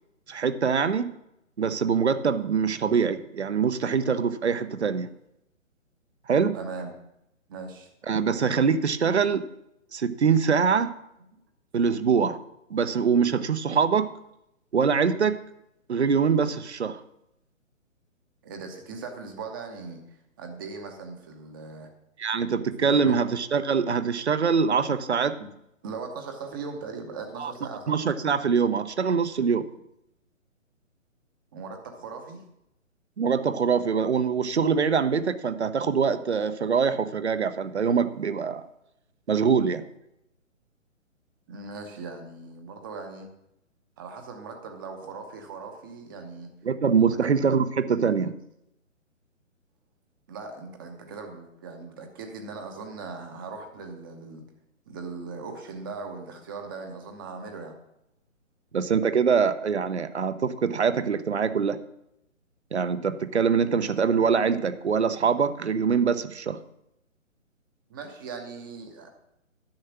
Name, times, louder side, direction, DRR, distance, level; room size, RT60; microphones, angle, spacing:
voice 1, 0.3-1.1 1.6-5.1 6.3-6.5 8.1-9.5 9.9-10.9 11.7-12.4 12.7-14.1 14.7-15.4 15.9-17.0 22.2-25.4 27.4-27.5 27.9-29.7 33.2-38.6 39.3-39.8 46.6-48.3 58.7-61.8 62.7-66.6, right 6 dB, 55° right, 12 dB, 0.9 m, -24 dB
voice 2, 6.5-6.9 7.5-7.9 18.4-21.9 22.8-23.2 25.8-28.0 31.5-32.4 41.5-43.3 44.0-46.5 47.1-47.3 50.3-54.4 54.9-57.7 67.9-69.1, right 4 dB, 15° right, 4 dB, 0.9 m, -39 dB
10.5 x 7.4 x 5.9 m, 0.82 s
figure-of-eight pair, 135°, 40 cm